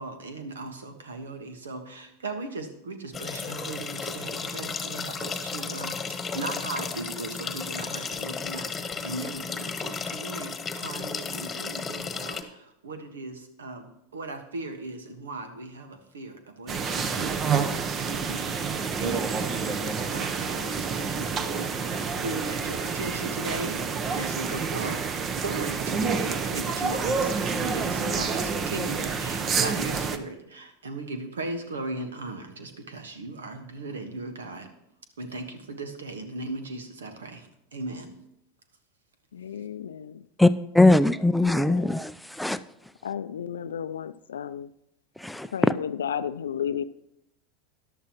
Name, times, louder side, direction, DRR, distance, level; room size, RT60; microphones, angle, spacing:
voice 1, 0.0-18.6 19.0-23.8 24.1-25.0 25.4-34.7 35.2-38.1, right 2 dB, 85° right, 7 dB, 1.4 m, -37 dB
sound 1, 3.1-12.4, left 5 dB, 20° left, 1.3 m, -34 dB
sound 2, 16.7-30.2, right 5 dB, 35° right, 0.9 m, -28 dB
voice 2, 39.3-40.2 41.4-42.0 43.0-44.7 45.5-46.8, left 8 dB, 80° left, 15 dB, 0.4 m, -33 dB
voice 3, 40.8-42.6 45.2-45.7, left 2 dB, ahead, 12 dB, 0.4 m, -20 dB
14.0 x 11.0 x 3.0 m, 0.79 s
hypercardioid pair, 90°, 0 cm